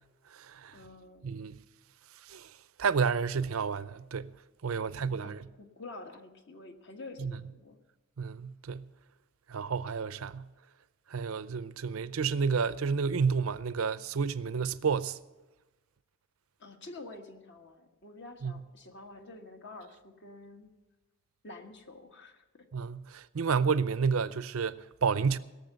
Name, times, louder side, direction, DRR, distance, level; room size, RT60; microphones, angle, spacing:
voice 1, 0.7-1.3 5.0-7.8 16.6-20.7 21.4-22.6, left 2 dB, 55° left, 1.4 m, -48 dB
voice 2, 1.2-1.6 2.3-2.5 2.8-4.3 4.6-5.4 7.2-7.3 8.2-8.9 9.5-10.5 11.1-15.2 18.4-18.5 22.7-25.4, right 5 dB, 80° right, 0.6 m, -30 dB
17.5 x 7.0 x 8.1 m
head